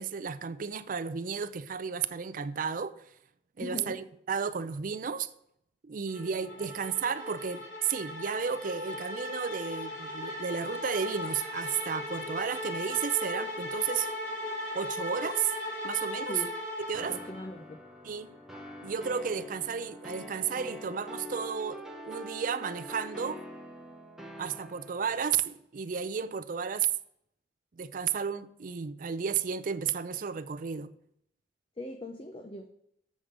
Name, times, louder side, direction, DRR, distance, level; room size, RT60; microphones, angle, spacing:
voice 1, 0.0-2.9 3.6-5.3 5.8-14.1 14.7-15.5 15.8-16.4 16.8-17.2 18.0-18.4 18.8-23.4 24.4-26.9 27.8-30.9, right 7 dB, 45° right, 0.4 m, -33 dB
voice 2, 3.6-4.0 6.6-6.7 16.3-16.5 17.1-17.9 31.8-32.7, left 1 dB, 30° left, 0.6 m, -40 dB
sound 1, 6.1-17.5, left 1 dB, 70° left, 3.2 m, -37 dB
sound 2, 16.9-25.2, equal, 5° right, 0.9 m, -45 dB
7.4 x 5.0 x 6.4 m
head